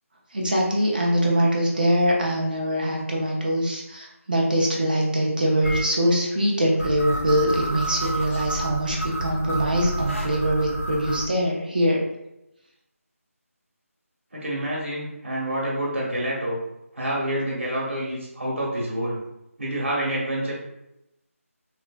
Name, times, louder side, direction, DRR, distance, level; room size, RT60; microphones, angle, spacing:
voice 1, 0.3-12.0, equal, 35° right, -2 dB, 0.5 m, -23 dB
sound 1, 5.6-5.8 6.8-11.3, right 1 dB, 55° left, 0.5 m, -29 dB
voice 2, 14.3-16.6 16.9-19.2 19.6-20.6, right 1 dB, 60° right, -4 dB, 0.9 m, -27 dB
3.2 x 2.1 x 2.2 m, 0.86 s
figure-of-eight pair, 180°, 8 cm